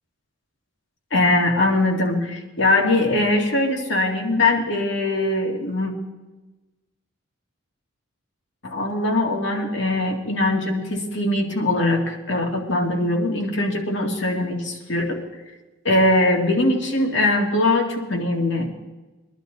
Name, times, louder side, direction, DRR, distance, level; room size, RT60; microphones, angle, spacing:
voice 1, 1.1-5.9 8.6-15.2 15.8-18.7, left 2 dB, 60° left, 1 dB, 2.2 m, -21 dB
22.5 x 11.5 x 4.0 m, 1.1 s
head